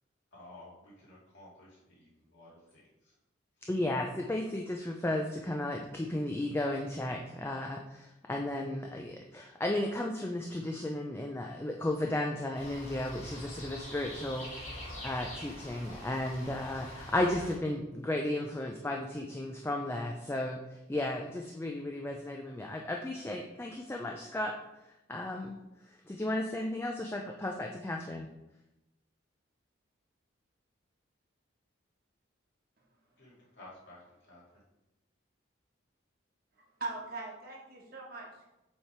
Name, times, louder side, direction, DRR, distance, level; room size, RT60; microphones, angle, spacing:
voice 1, 0.3-3.1 33.2-34.0 34.3-34.4, left 2 dB, 60° left, -7 dB, 2.3 m, -54 dB
voice 2, 3.7-14.7 15.0-24.6 24.8-25.6 26.1-28.3, left 1 dB, 10° left, 2 dB, 0.4 m, -34 dB
sound 1, 12.5-17.5, left 1 dB, 35° left, 2.0 m, -45 dB
voice 3, 36.5-38.5, right 3 dB, 50° right, -1 dB, 1.3 m, -41 dB
7.1 x 3.4 x 4.4 m, 0.95 s
head